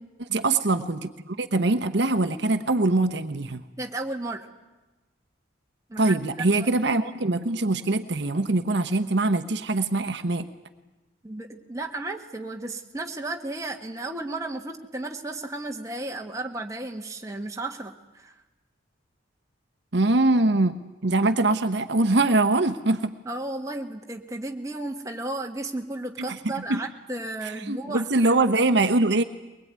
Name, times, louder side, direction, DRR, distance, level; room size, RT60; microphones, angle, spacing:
voice 1, 0.2-3.6 6.0-10.4 19.9-20.7 21.0-23.1 26.7-26.8 27.7-29.2, right 2 dB, 60° right, 7 dB, 1.0 m, -23 dB
voice 2, 3.8-4.5 5.9-6.2 6.5-6.7 11.2-18.3 23.2-28.0, right 2 dB, 15° right, 2 dB, 1.6 m, -34 dB
22.0 x 20.5 x 9.5 m, 1.1 s
head